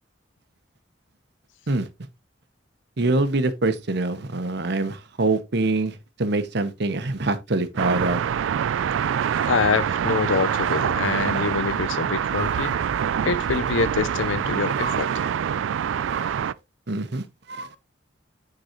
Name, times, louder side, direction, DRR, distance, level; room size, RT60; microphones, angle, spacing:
voice 1, 3.0-8.2 12.3-12.7 14.7-15.3 16.0-16.3 16.9-17.8, right 2 dB, 60° right, 0.9 m, -25 dB
sound 1, 7.8-16.5, right 8 dB, 85° right, 0.3 m, -25 dB
voice 2, 9.4-12.8 13.2-15.1, left 5 dB, 90° left, 0.5 m, -25 dB
9.0 x 3.9 x 3.0 m
head